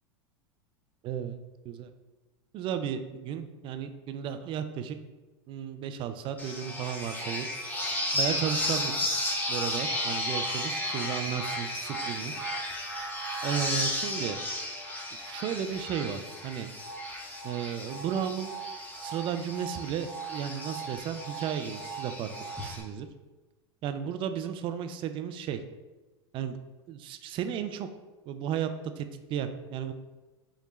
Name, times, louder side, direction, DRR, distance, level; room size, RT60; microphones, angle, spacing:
voice 1, 1.0-1.4 1.6-1.9 2.5-5.0 5.5-7.5 8.1-9.2 9.5-12.3 13.4-14.4 15.3-16.7 17.4-18.5 19.0-22.3 22.6-23.1 23.8-25.6 26.3-26.6 26.9-27.9 28.3-28.7 29.0-29.9, right 9 dB, 35° right, 8 dB, 0.3 m, -34 dB
sound 1, 6.4-22.8, left 1 dB, 10° left, 0.8 m, -34 dB
4.6 x 2.2 x 3.0 m, 1.2 s
hypercardioid pair, 85°, 14 cm